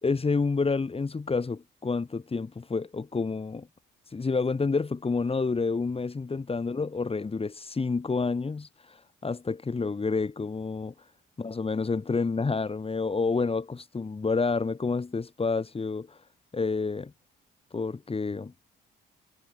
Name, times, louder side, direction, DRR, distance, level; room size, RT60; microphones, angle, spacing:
voice 1, 0.0-3.7 4.1-10.9 11.4-16.2 16.5-17.1 17.7-18.5, left 4 dB, 30° left, 5.8 m, -29 dB
cardioid pair, 90°, 20 cm